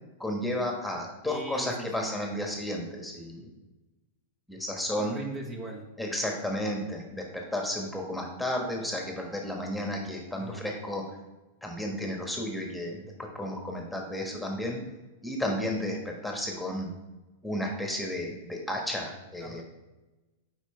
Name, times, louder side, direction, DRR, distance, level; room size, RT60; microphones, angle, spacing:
voice 1, 0.2-3.5 4.5-5.2 6.0-7.2 7.5-11.0 11.6-14.8 15.2-16.9 17.4-19.6, left 1 dB, 5° left, 0 dB, 1.4 m, -32 dB
voice 2, 1.2-2.1 4.9-5.9 10.3-10.6 19.4-19.6, right 2 dB, 30° right, 1 dB, 1.2 m, -39 dB
8.2 x 5.0 x 3.3 m, 1.1 s
hypercardioid pair, 110°, 0 cm